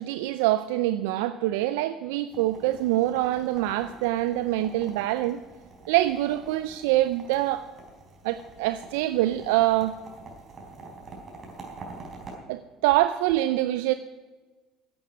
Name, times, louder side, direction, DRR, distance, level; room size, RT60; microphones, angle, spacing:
voice 1, 0.0-5.4 5.9-7.7 8.2-9.9 12.5-13.9, right 15 dB, 80° right, 12 dB, 0.4 m, -25 dB
sound 1, 2.3-12.4, right 3 dB, 40° right, 4.1 m, -46 dB
11.0 x 8.6 x 9.0 m, 1.3 s
hypercardioid pair, 75°, 0 cm